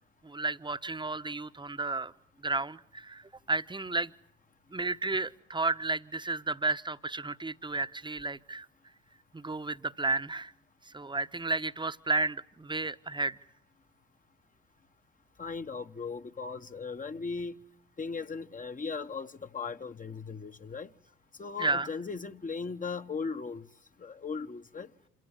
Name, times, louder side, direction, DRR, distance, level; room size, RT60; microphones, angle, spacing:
voice 1, 0.2-2.1 2.4-4.1 4.7-8.7 9.3-10.5 10.9-13.4 21.6-21.9, right 3 dB, 15° right, 1.2 m, -32 dB
voice 2, 15.4-17.6 18.0-20.9 21.4-23.7 24.0-24.9, left 5 dB, 25° left, 1.3 m, -37 dB
27.5 x 17.0 x 9.6 m
hypercardioid pair, 50°, 30 cm